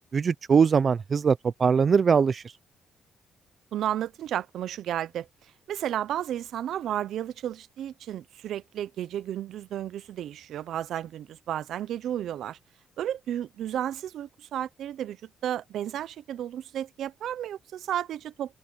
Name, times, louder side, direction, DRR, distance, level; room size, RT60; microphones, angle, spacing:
voice 1, 0.1-2.4, right 6 dB, 45° right, 0.6 m, -21 dB
voice 2, 3.7-5.3 5.7-12.6 13.0-15.2 15.4-18.6, right 11 dB, 75° right, 0.8 m, -32 dB
open air
cardioid pair, 90°, 0 cm